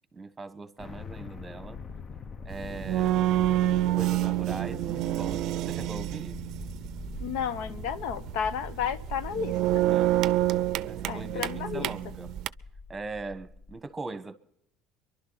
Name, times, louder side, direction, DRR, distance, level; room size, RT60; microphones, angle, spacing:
voice 1, 0.1-1.8 2.4-3.3 3.9-6.4 9.9-12.3 12.9-14.4, right 3 dB, 20° right, 1.4 m, -41 dB
sound 1, 0.8-13.8, left 4 dB, 35° left, 0.8 m, -43 dB
sound 2, 2.5-12.5, right 14 dB, 65° right, 0.5 m, -28 dB
voice 2, 7.2-9.8 11.1-11.9, left 8 dB, 80° left, 0.9 m, -32 dB
24.5 x 11.5 x 4.1 m
supercardioid pair, 100°, 0 cm